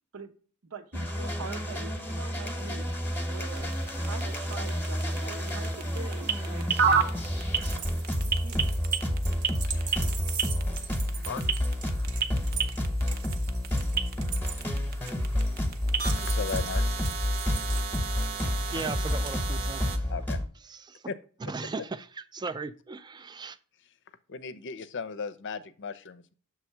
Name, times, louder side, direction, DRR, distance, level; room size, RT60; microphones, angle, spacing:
voice 1, 0.7-2.9 3.3-3.7 4.1-7.2 7.7-7.9 8.2-8.8, right 4 dB, 70° right, 0.9 m, -43 dB
sound 1, 0.9-20.5, left 1 dB, 10° left, 1.0 m, -30 dB
sound 2, 2.6-20.0, right 6 dB, 45° right, 0.7 m, -34 dB
sound 3, 7.6-19.3, right 8 dB, 90° right, 1.2 m, -42 dB
voice 2, 9.7-10.2 11.2-11.4 16.2-16.8 20.1-20.4 21.1-21.2 24.3-26.3, left 5 dB, 60° left, 0.6 m, -36 dB
voice 3, 18.7-20.1 20.6-21.0 21.4-23.6, right 3 dB, 20° right, 0.4 m, -37 dB
7.0 x 3.4 x 4.5 m
head